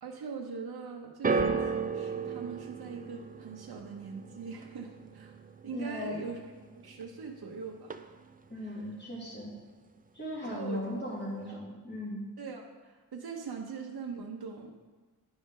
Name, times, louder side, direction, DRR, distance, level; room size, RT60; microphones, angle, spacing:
voice 1, 0.0-5.3 5.6-6.4 6.8-7.9 8.6-8.7 10.4-11.6 12.4-14.7, right 5 dB, 75° right, 0 dB, 0.8 m, -42 dB
sound 1, 1.2-7.5 7.8-8.4 9.2-9.3, right 4 dB, 25° right, 0.3 m, -35 dB
voice 2, 5.7-6.3 8.5-9.5 10.1-12.2, left 1 dB, 25° left, -6 dB, 2.5 m, -37 dB
10.5 x 5.3 x 3.7 m, 1.3 s
wide cardioid pair, 80°, 38 cm